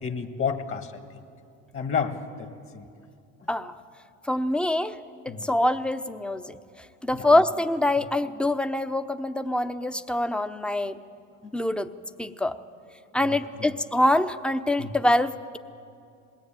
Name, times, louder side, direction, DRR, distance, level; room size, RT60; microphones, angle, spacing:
voice 1, 0.0-0.9 1.7-2.8 5.3-5.5 7.1-7.3 14.8-14.9, left 6 dB, 40° left, 5 dB, 2.0 m, -30 dB
voice 2, 4.3-5.0 5.2-6.6 7.0-11.0 11.4-11.9 12.2-12.6 13.1-15.6, left 1 dB, 5° left, 11 dB, 0.8 m, -25 dB
20.5 x 17.0 x 9.1 m, 2.4 s
supercardioid pair, 100°, 33 cm